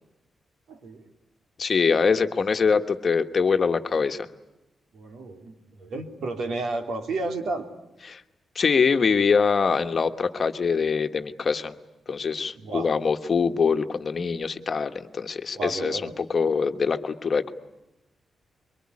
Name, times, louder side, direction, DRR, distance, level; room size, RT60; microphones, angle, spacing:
voice 1, 0.7-1.1 4.9-7.7 12.6-12.9 15.5-16.2, right 2 dB, 90° right, 4 dB, 3.5 m, -32 dB
voice 2, 1.6-4.3 8.1-8.2 8.5-11.7 12.1-17.5, left 5 dB, 35° left, 7 dB, 1.3 m, -24 dB
25.0 x 23.5 x 9.8 m, 0.93 s
wide cardioid pair, 175°, 0 cm